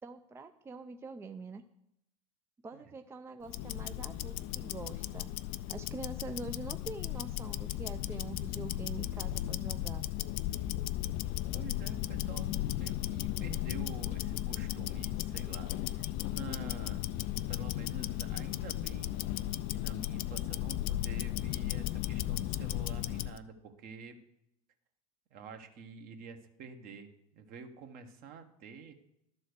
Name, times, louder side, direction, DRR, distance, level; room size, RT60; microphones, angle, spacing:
voice 1, 0.0-1.6 2.6-5.3 5.7-10.1, right 3 dB, 15° right, 8 dB, 0.4 m, -45 dB
Tick-tock, 3.5-23.4, left 14 dB, 50° left, 0.4 m, -35 dB
voice 2, 11.5-17.1 17.5-19.2 19.7-24.2 25.3-29.0, right 5 dB, 50° right, 7 dB, 1.2 m, -48 dB
12.0 x 4.4 x 6.6 m, 0.81 s
hypercardioid pair, 85°, 19 cm